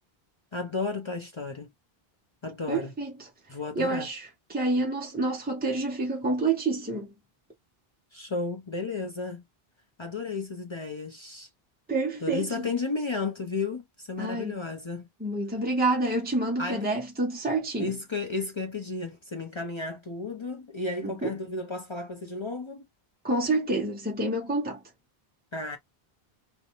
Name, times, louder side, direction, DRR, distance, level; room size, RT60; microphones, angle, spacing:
voice 1, 0.5-1.7 2.4-2.9 3.5-4.1 8.1-9.4 10.0-11.5 12.2-15.1 16.6-16.8 17.8-22.8 25.5-25.8, left 3 dB, 35° left, 0.6 m, -33 dB
voice 2, 2.7-3.3 3.8-7.1 11.9-12.6 14.2-14.6 15.2-17.9 21.0-21.3 23.2-24.8, right 2 dB, 15° right, 0.5 m, -28 dB
2.5 x 2.2 x 2.9 m
omnidirectional pair, 1.0 m